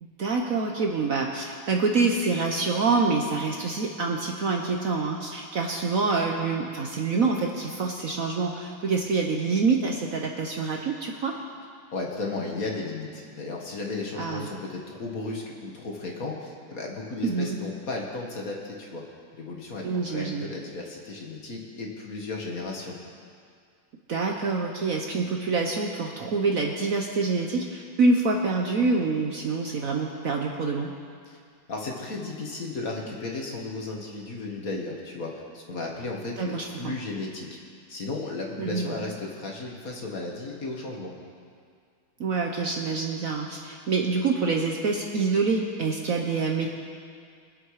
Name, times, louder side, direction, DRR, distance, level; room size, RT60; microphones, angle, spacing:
voice 1, 0.0-11.4 14.2-14.5 17.2-17.6 19.8-20.5 24.1-30.9 36.4-36.9 38.6-39.0 42.2-46.7, right 4 dB, 55° right, 1 dB, 1.1 m, -26 dB
voice 2, 11.9-19.0 19.4-23.0 31.3-31.4 31.7-37.6 37.9-41.1, left 3 dB, 50° left, -1 dB, 2.0 m, -34 dB
23.0 x 7.8 x 4.8 m, 2.2 s
omnidirectional pair, 2.1 m